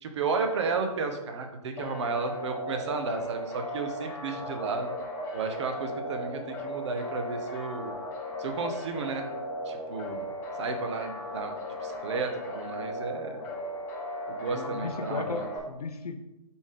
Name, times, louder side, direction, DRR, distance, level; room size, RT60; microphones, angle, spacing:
voice 1, 0.0-4.9 5.3-7.9 8.4-9.2 9.7-10.3 10.6-11.5 11.8-13.4 14.3-15.5, right 4 dB, 45° right, 6 dB, 0.7 m, -33 dB
sound 1, 1.8-15.6, left 1 dB, 10° left, 0.4 m, -37 dB
voice 2, 14.5-16.2, left 4 dB, 70° left, 7 dB, 0.7 m, -36 dB
4.0 x 3.6 x 3.6 m, 0.97 s
figure-of-eight pair, 135°, 20 cm